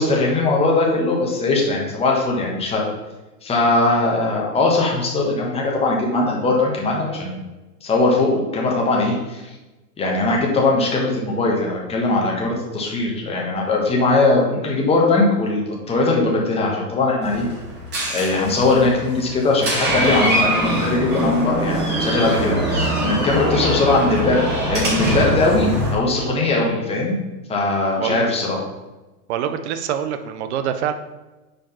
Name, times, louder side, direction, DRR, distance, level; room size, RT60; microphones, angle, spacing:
voice 1, 0.0-2.8 3.4-7.4 7.8-9.4 10.0-17.5 18.1-27.2 27.5-28.6, left 2 dB, 10° left, -2 dB, 1.2 m, -20 dB
Door, 17.2-25.9, right 1 dB, 20° right, 2.2 m, -23 dB
voice 2, 29.3-30.9, right 9 dB, 45° right, 9 dB, 0.6 m, -25 dB
5.1 x 5.0 x 5.5 m, 1.1 s
hypercardioid pair, 145°, 48 cm